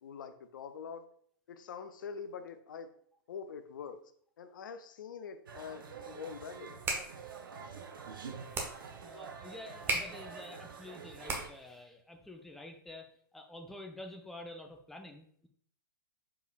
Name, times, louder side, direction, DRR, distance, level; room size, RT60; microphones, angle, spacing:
voice 1, 0.0-1.0 1.5-2.9 3.3-4.0 4.4-6.8, left 6 dB, 60° left, 9 dB, 0.5 m, -44 dB
sound 1, 5.5-11.5, right 6 dB, 70° right, 0.6 m, -47 dB
sound 2, 6.6-11.8, right 3 dB, 20° right, 0.9 m, -39 dB
voice 2, 9.0-15.5, left 2 dB, ahead, 3 dB, 0.4 m, -48 dB
4.8 x 4.7 x 2.3 m, 0.62 s
figure-of-eight pair, 105°, 12 cm